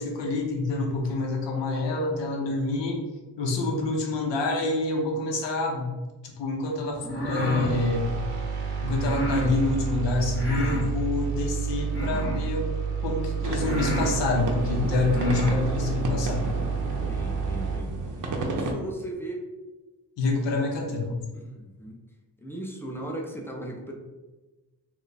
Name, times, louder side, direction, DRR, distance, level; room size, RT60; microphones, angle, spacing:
voice 1, 0.0-3.0 3.4-5.9 6.4-8.1 8.8-12.7 13.0-16.5 20.2-21.2, left 3 dB, 80° left, 1 dB, 0.8 m, -27 dB
sound 1, 7.0-7.7 9.0-9.5 10.3-10.9 11.9-12.5 13.2-13.3 13.6-14.1 14.9-15.6, right 1 dB, 30° left, 0.8 m, -31 dB
sound 2, 7.7-17.8, right 6 dB, 85° right, 0.8 m, -30 dB
sound 3, 13.4-18.7, right 2 dB, 45° right, 0.6 m, -32 dB
voice 2, 17.1-18.0 18.4-19.4 21.3-22.0 22.4-23.9, right 1 dB, 5° left, 0 dB, 0.4 m, -37 dB
3.1 x 2.2 x 3.9 m, 1.2 s
wide cardioid pair, 125°, 43 cm